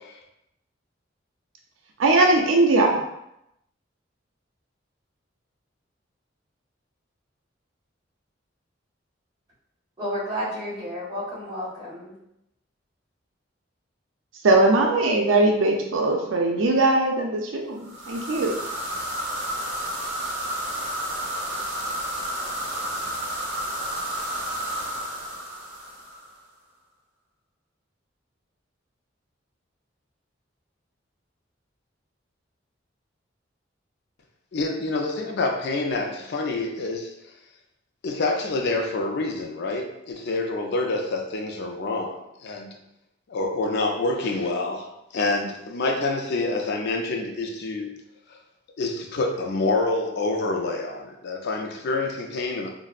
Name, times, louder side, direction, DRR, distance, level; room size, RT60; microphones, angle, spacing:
voice 1, 2.0-3.0 14.4-18.6, right 2 dB, 90° right, 1 dB, 0.5 m, -20 dB
voice 2, 10.0-12.1, equal, 25° right, -8 dB, 1.4 m, -31 dB
sound 1, 17.8-26.4, right 1 dB, 65° right, 0.9 m, -31 dB
voice 3, 34.5-37.1 38.0-42.2 42.4-42.7 43.3-48.0 48.8-52.7, left 2 dB, 60° left, 3 dB, 0.4 m, -27 dB
4.2 x 2.0 x 2.3 m, 0.82 s
head